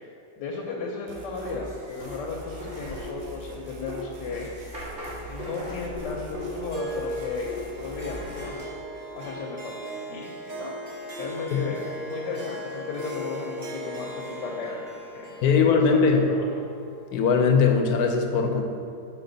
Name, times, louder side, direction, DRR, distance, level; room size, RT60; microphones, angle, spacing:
voice 1, 0.4-4.9 5.3-7.5 7.8-8.7 9.1-10.7 11.2-11.8 12.1-14.8 15.1-16.5, left 4 dB, 90° left, -1 dB, 1.4 m, -35 dB
sound 1, 1.1-1.6 2.0-5.3 5.5-8.5, left 1 dB, 85° right, 1.5 m, -44 dB
sound 2, 1.4-8.6, equal, 50° right, 1.8 m, -38 dB
Harp, 6.7-17.3, equal, 70° right, 0.4 m, -37 dB
voice 2, 15.4-16.3 17.1-18.6, left 5 dB, 70° left, 3 dB, 1.1 m, -20 dB
7.0 x 4.8 x 3.9 m, 2.5 s
omnidirectional pair, 1.8 m